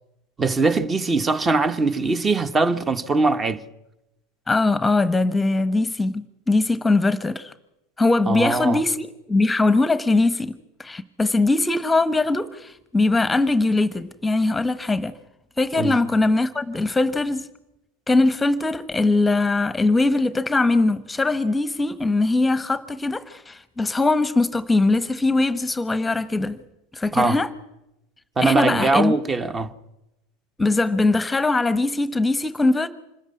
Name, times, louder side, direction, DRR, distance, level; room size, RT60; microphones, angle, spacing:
voice 1, 0.4-3.6 8.3-8.8 15.8-16.0 27.1-27.4 28.4-29.7, right 3 dB, 20° right, 1.5 m, -21 dB
voice 2, 4.5-7.5 8.0-10.5 10.8-15.1 15.6-17.5 18.1-26.6 26.9-27.5 28.4-29.1 30.6-32.9, left 2 dB, 10° left, 1.1 m, -21 dB
26.0 x 14.0 x 9.8 m
hypercardioid pair, 85°, 0 cm